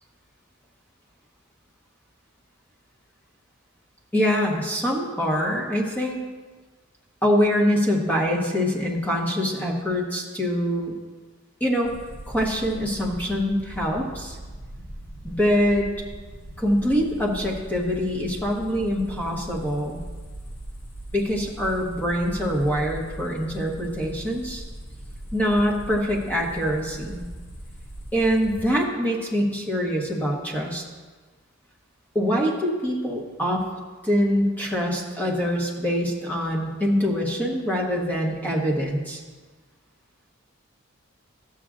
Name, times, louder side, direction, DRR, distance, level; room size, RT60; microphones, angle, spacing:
voice 1, 4.1-6.2 7.2-10.9 11.6-11.9 12.3-14.4 15.2-15.9 16.6-20.0 21.1-24.6 25.3-27.2 28.1-30.8 32.1-33.7 34.0-39.2, equal, 10° left, -2 dB, 1.2 m, -24 dB
sound 1, 11.8-28.7, right 1 dB, 75° left, 2.0 m, -40 dB
12.5 x 7.3 x 2.5 m, 1.3 s
head